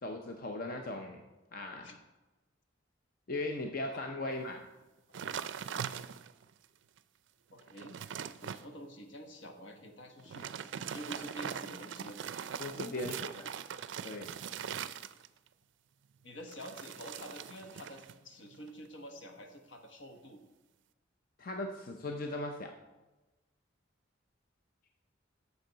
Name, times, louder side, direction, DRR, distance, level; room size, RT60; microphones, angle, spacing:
voice 1, 0.0-1.2 1.5-1.9 3.3-4.6 12.6-13.1 14.0-14.4 21.4-22.7, left 2 dB, 50° left, 4 dB, 0.6 m, -38 dB
voice 2, 3.9-4.3 5.1-5.2 7.5-8.0 8.4-10.5 10.9-12.2 12.9-13.3 16.2-20.4, equal, 70° left, 5 dB, 1.1 m, -48 dB
sound 1, 5.1-6.5 7.0-7.1 7.5-8.7 10.2-15.5 16.5-18.2 18.5-18.9, right 8 dB, 70° right, 0.4 m, -41 dB
10.0 x 7.0 x 3.9 m, 1.1 s
head